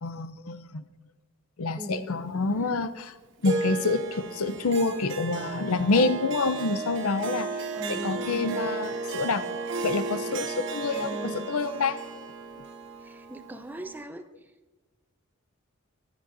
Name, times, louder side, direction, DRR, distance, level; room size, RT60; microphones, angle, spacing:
voice 1, 0.0-0.8 1.6-3.1 3.4-7.5 7.9-9.4 9.8-12.0, left 3 dB, 85° left, 12 dB, 0.7 m, -27 dB
voice 2, 1.8-2.3 7.7-8.6 10.9-11.6 13.0-14.2, right 1 dB, 10° right, 8 dB, 0.5 m, -39 dB
Harp, 3.4-14.0, right 4 dB, 55° right, 1.2 m, -34 dB
15.0 x 11.5 x 2.7 m, 1.3 s
head